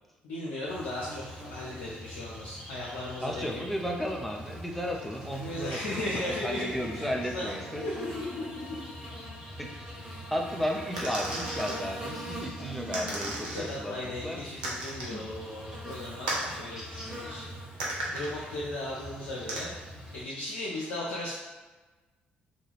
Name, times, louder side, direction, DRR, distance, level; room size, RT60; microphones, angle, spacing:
voice 1, 0.2-3.6 5.4-7.5 7.8-8.9 13.5-17.5 18.1-19.7 20.1-21.3, left 1 dB, 65° left, -6 dB, 0.4 m, -36 dB
Buzz, 0.7-20.2, equal, 15° right, 1.1 m, -42 dB
voice 2, 3.2-7.9 9.6-9.9 10.3-14.4 15.1-15.2, equal, 5° left, 0 dB, 0.5 m, -34 dB
sound 1, 11.0-11.8 12.9-13.8 14.6-15.2 16.3-16.5 17.8-18.3 19.5-19.6, right 1 dB, 75° right, 0.5 m, -34 dB
2.3 x 2.3 x 3.2 m, 1.2 s
figure-of-eight pair, 45°, 5 cm